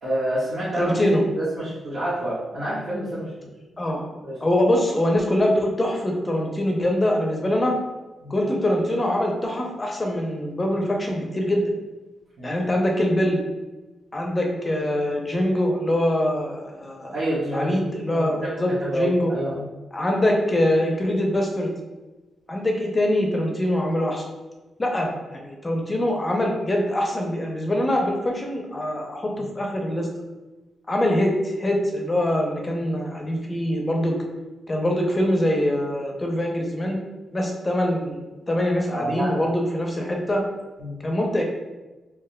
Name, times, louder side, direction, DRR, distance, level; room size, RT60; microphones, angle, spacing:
voice 1, 0.0-0.9 1.3-3.5 4.2-4.4 8.2-8.3 12.4-12.5 17.1-19.6 29.4-29.5 38.9-39.4 40.8-40.9, right 1 dB, 70° right, -11 dB, 1.2 m, -28 dB
voice 2, 0.8-1.2 3.8-4.0 4.4-7.8 8.3-11.6 12.4-13.4 14.1-17.1 17.5-19.3 19.9-21.7 22.5-24.2 24.8-30.1 30.9-34.1 34.7-37.0 37.3-38.2 38.5-40.4 41.0-41.4, left 1 dB, 25° left, 1 dB, 0.6 m, -23 dB
3.5 x 3.0 x 2.2 m, 1.1 s
cardioid pair, 75°, 0 cm